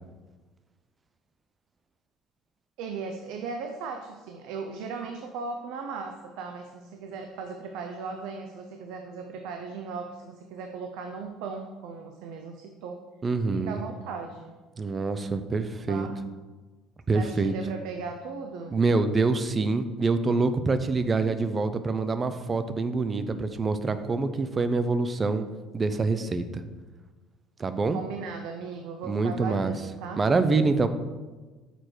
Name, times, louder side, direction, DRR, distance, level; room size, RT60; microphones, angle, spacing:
voice 1, 2.8-13.0 13.5-14.5 15.9-16.2 17.1-18.8 27.9-30.3, right 5 dB, 75° right, 4 dB, 0.6 m, -37 dB
voice 2, 13.2-13.8 14.8-16.1 17.1-17.5 18.7-25.4 25.7-26.6 27.6-28.0 29.1-29.7 30.2-30.9, right 3 dB, 20° right, 11 dB, 0.3 m, -25 dB
6.6 x 4.7 x 4.4 m, 1.3 s
cardioid pair, 175°, 0 cm